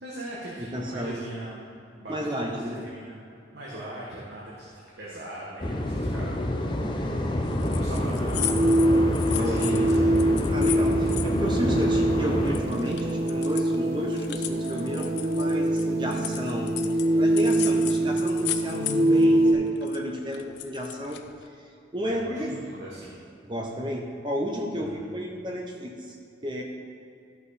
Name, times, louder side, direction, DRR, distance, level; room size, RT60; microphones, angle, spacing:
voice 1, 0.0-1.6 2.0-3.2 3.5-6.7 7.0-7.3 7.7-8.8 9.3-9.9 17.5-18.3 22.0-23.2 24.8-25.1, right 1 dB, 75° right, -6 dB, 1.5 m, -40 dB
voice 2, 0.6-1.2 2.1-2.8 9.3-9.9 10.5-16.8 17.2-22.5 23.4-26.2 26.4-26.6, equal, 25° right, 1 dB, 0.8 m, -32 dB
sound 1, 5.6-12.6, left 1 dB, 25° left, 0.7 m, -27 dB
sound 2, 7.4-12.2 12.5-17.1 17.4-19.2 19.5-21.5, left 12 dB, 75° left, 0.5 m, -36 dB
sound 3, 8.0-19.5, right 1 dB, 55° right, 1.3 m, -24 dB
13.5 x 5.6 x 4.1 m, 2.6 s
head